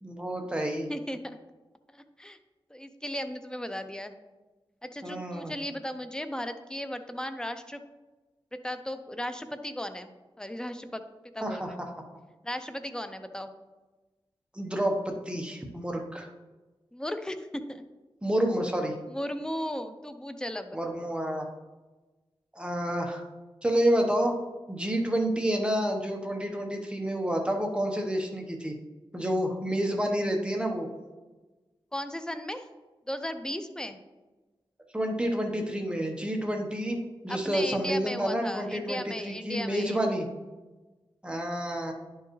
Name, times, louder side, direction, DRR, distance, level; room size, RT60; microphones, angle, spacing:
voice 1, 0.0-0.9 5.0-5.5 11.4-11.9 14.5-16.3 18.2-18.9 20.7-21.5 22.5-23.2 23.6-24.3 24.7-28.7 29.1-30.9 34.9-37.0 37.2-40.3 41.2-41.9, right 1 dB, 10° right, 2 dB, 1.0 m, -29 dB
voice 2, 0.9-1.4 1.9-2.4 2.7-4.1 4.8-7.8 8.5-10.1 10.4-11.0 11.3-11.8 12.4-13.5 16.9-17.8 19.1-20.8 31.9-32.7 33.1-34.0 37.3-40.0, left 1 dB, 10° left, 8 dB, 0.5 m, -36 dB
10.5 x 4.6 x 3.1 m, 1.2 s
wide cardioid pair, 85°, 10 cm